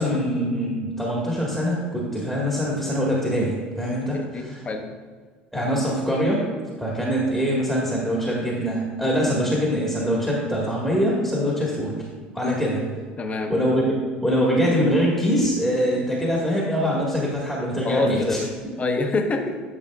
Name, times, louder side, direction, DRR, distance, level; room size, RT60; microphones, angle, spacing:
voice 1, 0.0-4.6 5.5-6.4 6.8-12.0 12.3-12.8 13.5-13.9 14.2-18.4, equal, 5° right, -5 dB, 1.6 m, -23 dB
voice 2, 4.1-4.8 12.4-12.7 13.2-13.5 17.8-18.5 18.8-19.5, left 3 dB, 30° left, 3 dB, 1.1 m, -25 dB
11.0 x 4.8 x 2.4 m, 1.5 s
hypercardioid pair, 75°, 5 cm